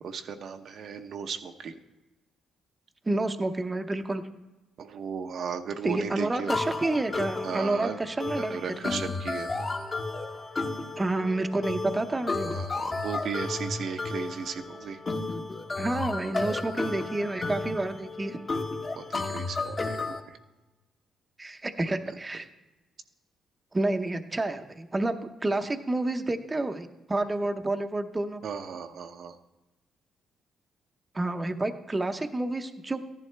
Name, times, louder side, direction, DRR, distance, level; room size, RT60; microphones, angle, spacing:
voice 1, 0.0-1.7 4.8-6.6 7.4-8.0 8.4-9.7 12.4-15.0 19.0-20.0 20.3-20.4 28.4-29.4, right 6 dB, 65° right, 6 dB, 0.8 m, -36 dB
voice 2, 3.1-4.2 5.8-8.8 11.0-12.5 15.8-18.4 21.4-22.5 23.7-28.4 31.1-33.0, right 2 dB, 20° right, 6 dB, 0.7 m, -29 dB
sound 1, 6.5-20.2, left 3 dB, 35° left, 1.3 m, -33 dB
14.0 x 11.0 x 3.3 m, 1.1 s
cardioid pair, 90°, 0 cm